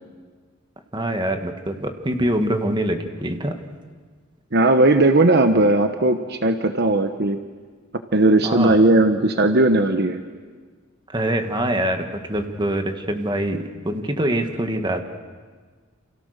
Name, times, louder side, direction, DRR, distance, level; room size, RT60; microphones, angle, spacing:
voice 1, 0.9-3.6 8.4-8.8 11.1-15.0, right 1 dB, 20° right, 6 dB, 1.9 m, -24 dB
voice 2, 4.5-7.4 8.1-10.2, right 2 dB, 50° right, 7 dB, 1.1 m, -17 dB
29.5 x 28.5 x 6.7 m, 1.5 s
head